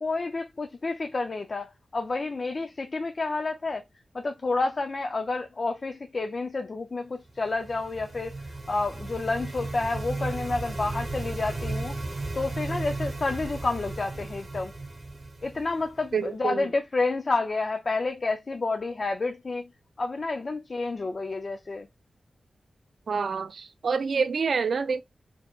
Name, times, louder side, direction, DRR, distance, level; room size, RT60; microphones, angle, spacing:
voice 1, 0.0-3.8 4.1-8.3 8.7-12.0 12.4-14.7 15.4-19.7 20.0-21.9, left 3 dB, 45° left, 0.4 m, -29 dB
sound 1, 7.4-16.1, right 2 dB, 45° right, 1.2 m, -35 dB
voice 2, 16.1-16.7 23.1-25.0, right 5 dB, 65° right, 0.3 m, -27 dB
4.3 x 2.8 x 2.3 m
wide cardioid pair, 100°, 0 cm